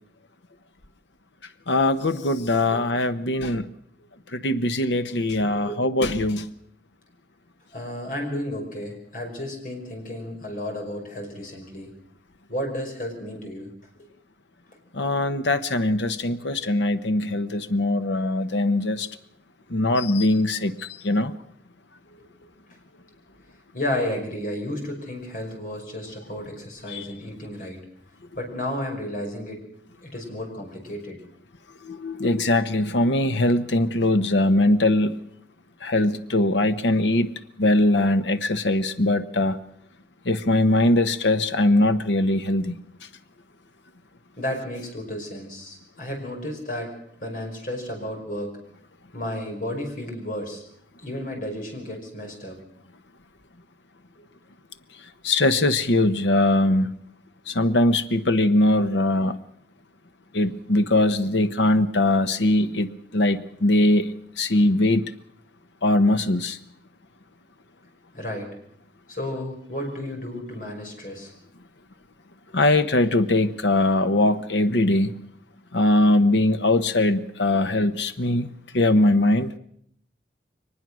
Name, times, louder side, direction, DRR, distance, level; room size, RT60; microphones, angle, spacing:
voice 1, 1.7-3.7 4.3-6.5 14.9-19.1 19.7-21.3 26.9-27.1 31.8-35.2 35.8-37.3 37.6-39.6 40.2-42.7 55.2-56.9 57.5-59.4 60.3-65.0 65.8-66.6 72.5-75.1 75.7-78.5 78.7-79.5, left 1 dB, 80° left, 1.1 m, -21 dB
voice 2, 5.3-5.8 7.7-11.9 12.5-13.7 23.7-27.8 28.4-29.6 30.0-31.2 44.4-46.9 47.2-48.6 49.1-50.6 51.0-52.6 68.1-68.5 69.1-71.3, left 1 dB, 45° left, 5.6 m, -32 dB
23.0 x 20.0 x 6.3 m
head